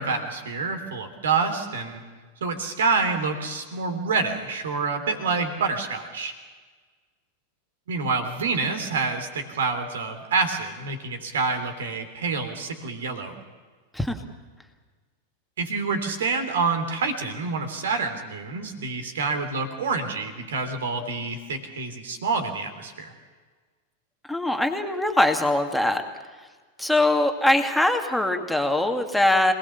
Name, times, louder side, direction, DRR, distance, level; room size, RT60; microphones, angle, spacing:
voice 1, 0.0-2.0 2.4-6.3 7.9-13.4 15.6-23.1, right 4 dB, 65° right, 7 dB, 3.3 m, -27 dB
voice 2, 24.3-26.0 26.8-29.5, left 1 dB, 5° left, 4 dB, 2.2 m, -22 dB
26.5 x 19.5 x 7.1 m, 1.4 s
figure-of-eight pair, 90°, 0 cm